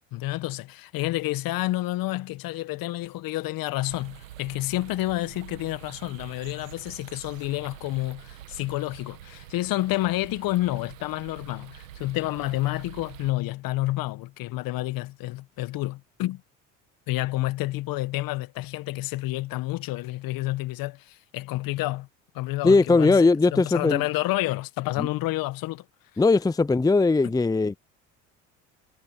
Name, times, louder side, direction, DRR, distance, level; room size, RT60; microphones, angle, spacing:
voice 1, 0.1-16.4 17.1-22.1 22.3-25.8 27.2-27.3, left 18 dB, 60° left, 1.6 m, -29 dB
sound 1, 3.9-13.3, right 13 dB, 90° right, 1.9 m, -46 dB
voice 2, 22.6-24.0 25.0-25.1 26.2-27.8, left 3 dB, 10° left, 0.7 m, -19 dB
hypercardioid pair, 65°, 38 cm